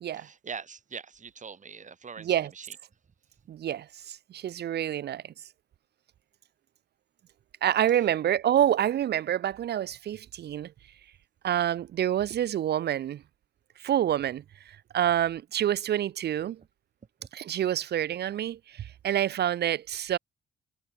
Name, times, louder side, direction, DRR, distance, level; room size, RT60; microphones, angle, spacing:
voice 1, 0.1-2.8 7.9-8.1, right 6 dB, 40° right, 4.1 m, -43 dB
voice 2, 2.2-2.5 3.5-5.2 7.6-10.7 11.4-13.2 13.8-14.4 14.9-16.6 17.3-20.2, right 11 dB, 55° right, 0.6 m, -27 dB
cardioid pair, 90°, 20 cm